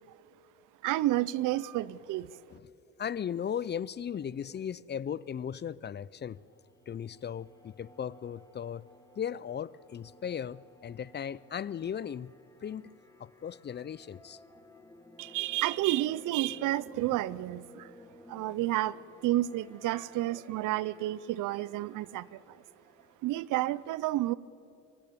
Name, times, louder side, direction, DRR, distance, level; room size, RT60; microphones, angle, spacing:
voice 1, 0.8-2.4 15.2-17.9 18.3-19.0 19.2-22.6 23.2-24.3, right 15 dB, 85° right, 21 dB, 0.6 m, -30 dB
voice 2, 3.0-6.4 6.9-8.9 9.2-12.3 12.6-12.9 13.2-14.4, left 8 dB, 35° left, 21 dB, 0.5 m, -37 dB
sound 1, 6.2-23.1, left 1 dB, 10° left, 2.1 m, -57 dB
23.5 x 15.5 x 8.5 m, 2.6 s
cardioid pair, 90°, 30 cm